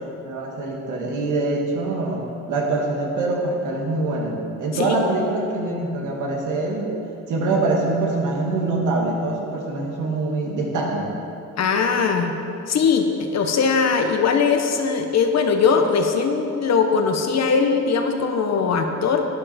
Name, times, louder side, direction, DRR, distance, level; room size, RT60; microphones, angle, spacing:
voice 1, 0.3-7.0 7.3-11.2, right 2 dB, 80° right, -1 dB, 2.1 m, -24 dB
voice 2, 11.6-12.3 12.7-19.3, left 5 dB, 60° left, 5 dB, 1.2 m, -20 dB
11.5 x 9.9 x 4.4 m, 2.7 s
cardioid pair, 90°, 30 cm